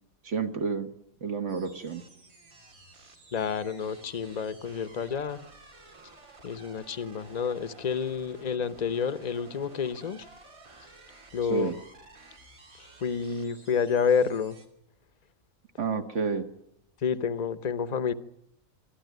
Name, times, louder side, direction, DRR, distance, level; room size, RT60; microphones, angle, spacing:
voice 1, 0.2-0.9 1.2-2.1 11.5-11.7 15.8-16.5, right 5 dB, 60° right, 8 dB, 1.7 m, -30 dB
sound 1, 1.5-14.7, right 2 dB, 85° right, 3.2 m, -53 dB
voice 2, 3.3-5.5 6.4-10.3 11.3-11.8 12.7-14.6 17.0-18.1, left 6 dB, 35° left, 14 dB, 0.8 m, -29 dB
25.0 x 13.0 x 9.3 m, 0.81 s
omnidirectional pair, 1.4 m